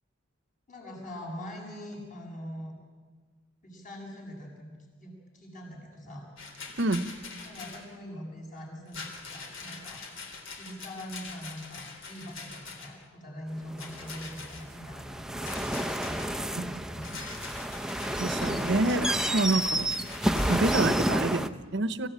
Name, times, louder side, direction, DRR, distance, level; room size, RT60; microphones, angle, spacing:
voice 1, 0.7-2.7 3.6-6.3 7.4-10.2 10.6-15.8 16.0-16.3 16.7-17.5, equal, 40° left, -1 dB, 8.0 m, -43 dB
Rattle, 6.4-7.9 8.9-13.0 13.8-14.6 15.4-16.5 17.0-21.0, left 4 dB, 65° left, 3.5 m, -43 dB
voice 2, 6.8-7.1 16.6-16.8 18.1-19.9 20.5-22.1, right 2 dB, 60° right, 13 dB, 1.0 m, -28 dB
sound 1, 13.7-21.5, right 1 dB, 5° right, 0.6 m, -30 dB
26.0 x 16.0 x 9.0 m, 1.5 s
head